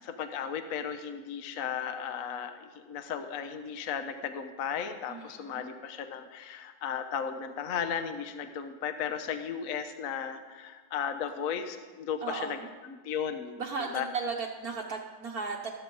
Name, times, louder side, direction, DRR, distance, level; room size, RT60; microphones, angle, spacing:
voice 1, 0.0-13.6 13.9-14.1, left 7 dB, 60° left, 8 dB, 1.1 m, -35 dB
voice 2, 5.1-5.7 12.2-12.7 13.6-15.7, right 4 dB, 60° right, 0 dB, 1.3 m, -36 dB
13.5 x 13.0 x 3.8 m, 1.5 s
omnidirectional pair, 1.9 m